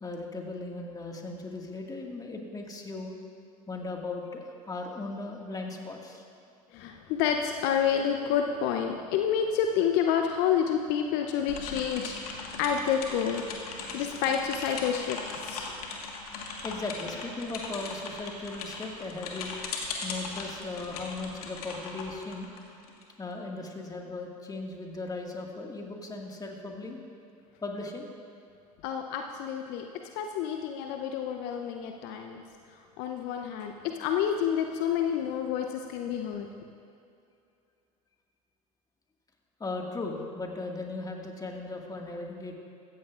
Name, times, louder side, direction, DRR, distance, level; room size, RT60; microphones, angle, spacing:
voice 1, 0.0-3.1 3.7-6.3 16.6-19.5 20.0-22.5 23.2-27.0 27.6-28.1 39.6-42.5, left 3 dB, 20° left, 1 dB, 1.8 m, -37 dB
voice 2, 6.7-15.7 28.8-29.8 30.2-32.4 33.0-36.5, left 8 dB, 60° left, 4 dB, 0.7 m, -29 dB
sound 1, 11.5-23.0, left 4 dB, 80° left, 1.6 m, -39 dB
15.5 x 14.0 x 2.5 m, 2.6 s
hypercardioid pair, 75°, 19 cm